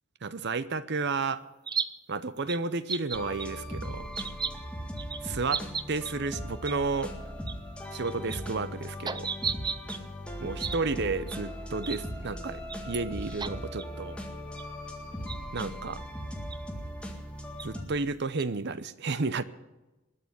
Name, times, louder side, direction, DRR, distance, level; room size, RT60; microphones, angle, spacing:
voice 1, 0.2-1.4 2.1-4.1 5.2-7.1 7.9-9.3 10.4-12.6 12.9-14.2 15.5-16.0 17.6-19.4, right 3 dB, 55° right, 15 dB, 0.8 m, -32 dB
sound 1, 1.7-1.9 2.5-2.6 2.9-3.5 4.1-4.5 5.0-5.2 5.5-6.1 6.7-6.8 7.0-7.1 7.5-7.6 8.1-8.4 9.1-10.0 10.6-10.8 11.3-11.4 11.8-12.0 12.7-13.0 13.4-13.5 13.8-13.9 14.6-14.7 15.3-15.6 16.5-16.6 17.6-17.7 18.4-18.5, right 6 dB, 20° right, 0.5 m, -33 dB
sound 2, 3.1-17.8, equal, 5° left, 1.9 m, -39 dB
20.5 x 6.9 x 9.3 m, 1.1 s
head